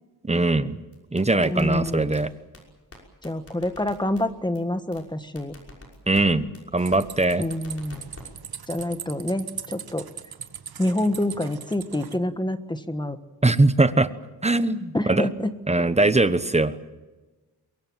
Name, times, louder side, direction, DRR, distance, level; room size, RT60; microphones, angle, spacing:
voice 1, 0.2-0.8 1.1-2.3 6.1-6.5 6.7-7.4 13.4-14.1 14.4-15.3 15.7-16.7, right 2 dB, 15° right, 12 dB, 1.1 m, -21 dB
sound 1, 0.9-2.2 2.5-2.6 2.9-3.0 3.2-4.2 4.5-4.6 4.9-5.0 5.4-6.2 6.5-6.6 6.9-7.0 7.3-8.2 8.5-8.9, left 2 dB, 35° left, 5.8 m, -44 dB
voice 2, 1.4-2.1 3.2-5.5 7.4-8.1 8.7-10.1 10.8-13.2 14.9-15.5, left 1 dB, 10° left, 10 dB, 1.4 m, -27 dB
sound 2, 6.8-12.2, right 8 dB, 65° right, 1.4 m, -40 dB
23.5 x 23.0 x 7.5 m, 1.2 s
wide cardioid pair, 135°, 39 cm